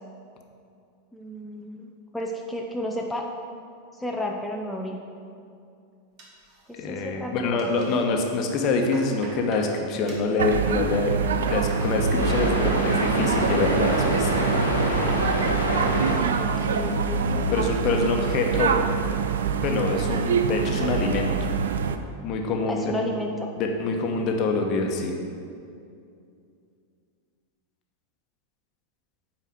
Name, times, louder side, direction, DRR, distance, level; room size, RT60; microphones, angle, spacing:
voice 1, 1.1-3.2 3.9-5.0 6.7-8.0 16.4-17.6 22.7-23.5, left 1 dB, 5° left, -1 dB, 0.6 m, -32 dB
sound 1, 6.2-7.0 7.3-8.1 8.5-9.7 10.1-10.4 11.0-11.9 12.2-12.8 13.1-13.6, right 2 dB, 40° right, 1.8 m, -45 dB
voice 2, 6.8-11.2 11.5-14.3 17.5-18.8 19.6-21.3 22.2-22.9 23.6-25.2, left 3 dB, 40° left, 2 dB, 1.1 m, -25 dB
sound 2, 10.4-22.0, right 6 dB, 65° right, 0.5 m, -25 dB
sound 3, 12.1-16.1 16.4-16.5 17.8-17.9 18.3-18.4 19.0-19.1, equal, 90° right, 1.5 m, -26 dB
9.1 x 4.8 x 6.4 m, 2.4 s
figure-of-eight pair, 90°, 0 cm